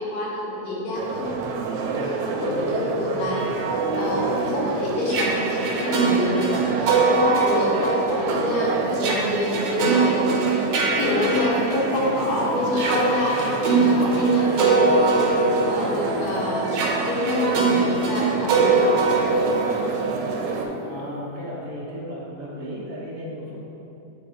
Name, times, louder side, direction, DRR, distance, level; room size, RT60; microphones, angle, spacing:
voice 1, 0.0-1.3 1.9-3.4 4.0-10.4 10.9-16.7 17.0-17.5 18.0-19.1, left 1 dB, 70° left, -5 dB, 2.5 m, -27 dB
sound 1, 0.9-20.7, right 4 dB, 90° right, 2.1 m, -28 dB
sound 2, 3.4-12.2 12.7-20.5, right 4 dB, 75° right, 2.0 m, -23 dB
sound 3, 8.0-20.8, equal, 85° left, 2.2 m, -34 dB
voice 2, 20.8-23.6, equal, 50° right, -7 dB, 1.5 m, -34 dB
7.8 x 5.9 x 2.5 m, 2.8 s
omnidirectional pair, 3.4 m